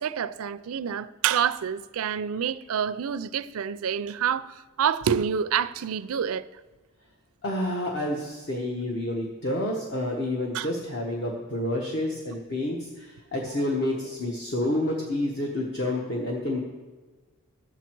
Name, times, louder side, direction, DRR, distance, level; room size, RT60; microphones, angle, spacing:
voice 1, 0.0-6.4 10.5-10.7 13.5-13.6, right 8 dB, 70° right, 0.4 m, -27 dB
voice 2, 7.4-16.6, left 1 dB, 50° left, 1.2 m, -29 dB
12.5 x 8.1 x 4.6 m
head